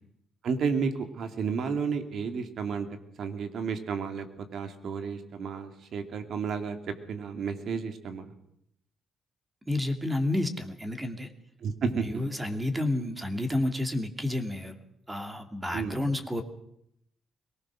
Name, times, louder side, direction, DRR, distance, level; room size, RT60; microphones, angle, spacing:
voice 1, 0.4-2.9 3.2-4.2 4.5-6.8 7.1-8.3 11.6-12.0 15.7-16.0, right 5 dB, 65° right, 7 dB, 2.6 m, -31 dB
voice 2, 9.7-11.3 12.0-14.8 15.1-16.4, left 1 dB, 15° right, 6 dB, 2.5 m, -30 dB
23.0 x 18.5 x 6.3 m, 0.75 s
cardioid pair, 90°, 0 cm